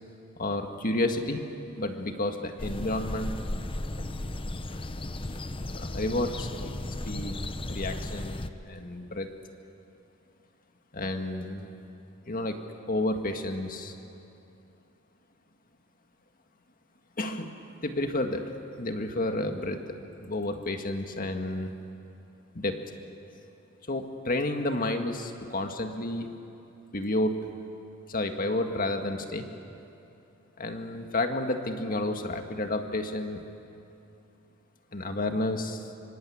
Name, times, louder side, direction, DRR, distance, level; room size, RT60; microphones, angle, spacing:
voice 1, 0.4-1.4 1.7-3.3 5.7-6.7 7.0-7.4 7.7-9.3 10.9-11.7 12.3-12.6 12.9-13.9 17.2-18.5 18.8-19.9 20.2-21.7 22.5-22.8 23.9-26.3 26.9-27.4 28.1-29.5 30.6-33.4 34.9-35.9, left 1 dB, 40° left, 5 dB, 1.9 m, -31 dB
sound 1, 2.6-8.5, left 1 dB, 25° left, 0.8 m, -35 dB
25.5 x 24.5 x 8.7 m, 2.8 s
head